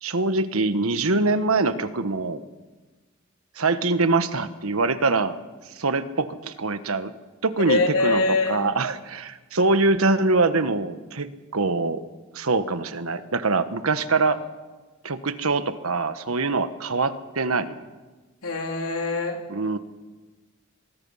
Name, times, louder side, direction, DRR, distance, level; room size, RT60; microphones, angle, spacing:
voice 1, 0.0-2.4 3.6-5.4 5.8-7.1 7.4-8.2 8.5-12.1 12.3-14.4 15.0-17.8 19.5-19.8, right 3 dB, 85° right, 11 dB, 1.3 m, -24 dB
voice 2, 7.7-8.7 18.4-19.4, left 3 dB, 85° left, 2 dB, 3.7 m, -23 dB
23.5 x 21.5 x 5.6 m, 1.3 s
head